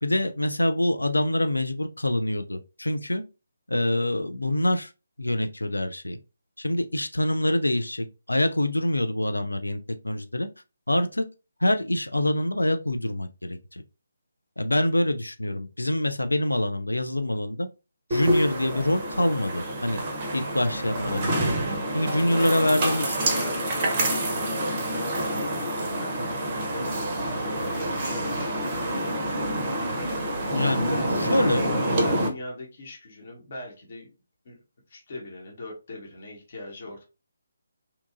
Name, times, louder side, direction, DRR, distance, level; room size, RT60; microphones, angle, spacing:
voice 1, 0.0-3.2 3.7-4.9 5.2-6.2 6.6-9.8 10.0-10.5 10.9-11.3 11.6-13.8 14.6-17.7 18.1-20.0 20.3-21.5 21.9-23.2 30.5-31.7, left 1 dB, 80° left, 0.3 m, -25 dB
sound 1, 18.1-32.3, right 1 dB, 30° right, 0.6 m, -27 dB
voice 2, 22.0-29.2 30.5-31.4 31.8-34.1 34.4-34.6 34.9-37.0, left 1 dB, 45° left, 0.9 m, -41 dB
2.8 x 2.3 x 2.4 m
figure-of-eight pair, 145°, 0 cm